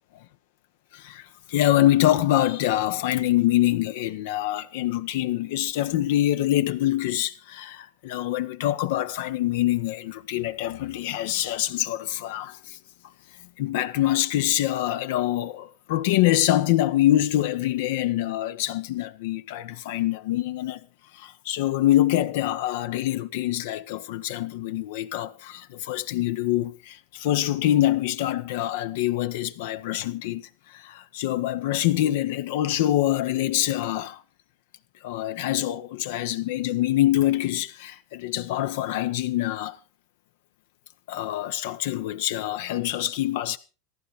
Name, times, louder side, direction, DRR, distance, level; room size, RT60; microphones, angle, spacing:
voice 1, 0.9-12.8 13.6-20.8 21.1-34.2 35.0-39.8 41.1-43.6, left 14 dB, 75° left, 1.1 m, -25 dB
14.5 x 11.5 x 4.9 m
hypercardioid pair, 100°, 0 cm